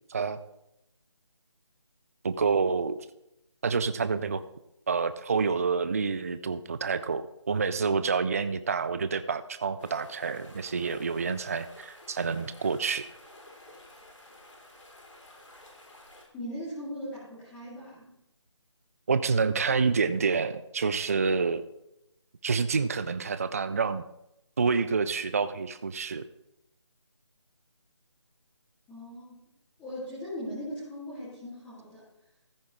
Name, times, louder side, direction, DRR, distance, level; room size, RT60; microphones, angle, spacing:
voice 1, 2.2-3.0 3.6-4.4 4.9-13.1 19.1-21.6 22.4-24.1 24.6-26.2, right 5 dB, 30° right, 12 dB, 0.4 m, -28 dB
sound 1, 9.8-16.3, left 1 dB, 85° left, 3.6 m, -52 dB
voice 2, 16.3-18.1 28.9-29.4 29.8-32.0, equal, 10° left, -10 dB, 2.3 m, -39 dB
14.5 x 9.5 x 3.2 m, 0.84 s
figure-of-eight pair, 160°, 15 cm